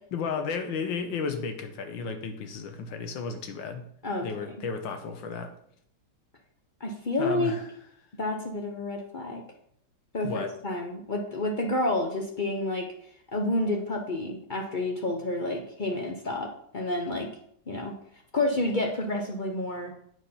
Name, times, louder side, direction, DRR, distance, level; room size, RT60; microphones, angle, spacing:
voice 1, 0.1-3.8 4.2-5.5 7.2-7.6 10.2-10.5, left 5 dB, 85° left, 6 dB, 1.7 m, -33 dB
voice 2, 6.8-7.5 8.2-9.4 10.1-12.9 13.3-17.3 17.7-17.9 18.3-19.9, left 2 dB, 45° left, 2 dB, 0.6 m, -29 dB
8.2 x 4.6 x 5.6 m, 0.68 s
omnidirectional pair, 2.0 m